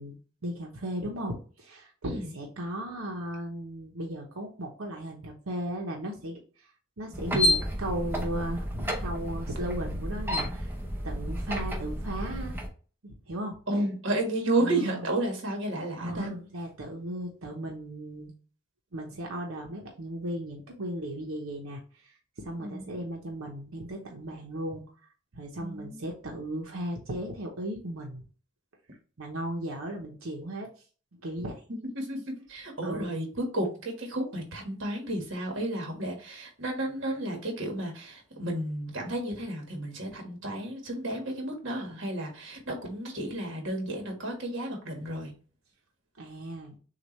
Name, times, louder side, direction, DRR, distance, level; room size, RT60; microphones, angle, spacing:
voice 1, 0.0-6.7 7.0-10.7 11.0-12.6 13.0-13.8 14.6-15.1 16.0-18.3 18.9-24.8 25.3-28.3 29.2-30.7 31.2-31.6 32.8-33.2 46.2-46.8, right 1 dB, 90° right, 0 dB, 0.9 m, -36 dB
sound 1, 7.1-12.7, equal, 10° right, 0.7 m, -31 dB
voice 2, 13.7-16.3 22.6-22.8 25.6-26.0 32.0-45.3, right 1 dB, 60° right, 2 dB, 1.5 m, -32 dB
6.6 x 2.5 x 3.1 m, 0.39 s
head